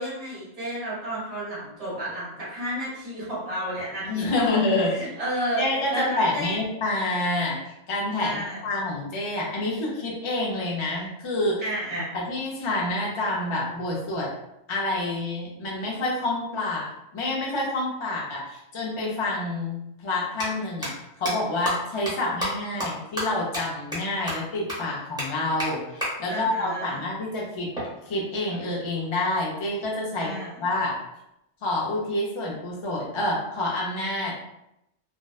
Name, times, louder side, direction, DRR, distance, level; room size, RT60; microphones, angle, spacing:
voice 1, 0.0-4.6 4.8-6.6 8.2-8.6 11.6-12.1 26.3-27.0 30.2-30.6, right 1 dB, 30° right, -7 dB, 1.2 m, -32 dB
voice 2, 4.0-4.9 5.6-11.6 12.1-14.3 14.7-27.7 28.1-30.3 30.6-31.0 31.6-34.3, left 2 dB, 45° left, -4 dB, 0.4 m, -28 dB
sound 1, 19.1-19.2 20.2-20.4 20.8-20.9 21.2-21.3 21.6-21.7 22.1-22.2 22.4-22.5 22.8-22.9 23.2-23.3 23.5-23.6 23.9-24.0 24.3-24.4 24.7-24.8 25.2-25.3 25.6-25.7 26.0-26.1 27.7-28.8, equal, 5° right, 0.6 m, -30 dB
2.5 x 2.1 x 2.3 m, 0.84 s
omnidirectional pair, 1.2 m